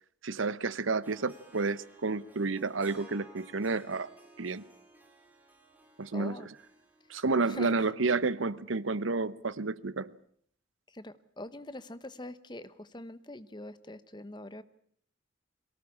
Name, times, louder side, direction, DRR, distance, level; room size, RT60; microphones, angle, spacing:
voice 1, 0.2-4.1 4.4-4.6 6.0-6.4 7.1-10.1, right 3 dB, 90° right, 0.9 m, -30 dB
Harp, 1.0-8.2, right 1 dB, 10° right, 3.7 m, -56 dB
voice 2, 6.1-6.5 7.5-7.9 10.9-14.6, left 1 dB, 25° left, 1.0 m, -44 dB
22.5 x 18.5 x 8.6 m
head